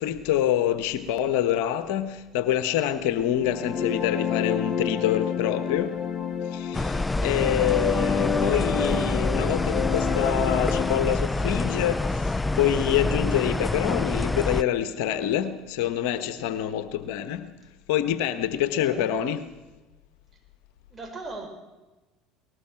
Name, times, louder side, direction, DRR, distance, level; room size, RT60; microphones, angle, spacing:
voice 1, 0.0-6.0 6.5-17.5 17.9-19.4, left 11 dB, 70° left, 1.3 m, -26 dB
sound 1, 3.3-11.2, left 6 dB, 30° left, 2.2 m, -29 dB
sound 2, 6.7-14.6, left 2 dB, 15° left, 0.5 m, -27 dB
voice 2, 18.8-19.1 20.9-21.5, right 2 dB, 25° right, 6.2 m, -39 dB
22.0 x 20.0 x 6.0 m
hypercardioid pair, 70°, 0 cm